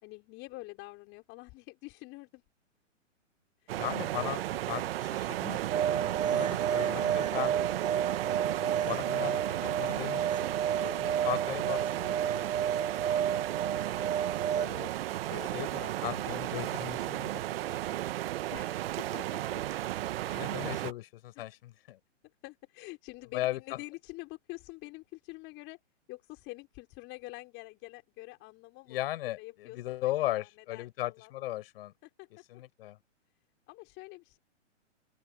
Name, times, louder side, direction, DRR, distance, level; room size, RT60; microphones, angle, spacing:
voice 1, 0.0-2.4 3.6-3.8 12.3-12.7 13.7-13.9 14.5-14.9 15.3-15.5 15.8-16.2 18.5-19.6 20.3-20.6 21.4-21.6 22.4-25.8 26.1-31.3 32.0-32.3 33.7-34.4, left 22 dB, 30° left, 4.7 m, -47 dB
voice 2, 3.7-5.6 5.9-7.5 8.4-12.6 15.5-17.4 17.7-18.1 20.3-22.0 23.3-23.8 28.9-31.9 32.5-33.0, left 15 dB, 50° left, 7.7 m, -37 dB
sound 1, 3.7-20.9, right 14 dB, 50° right, 1.3 m, -34 dB
sound 2, 5.7-14.7, right 8 dB, 80° right, 0.8 m, -31 dB
open air
hypercardioid pair, 130°, 37 cm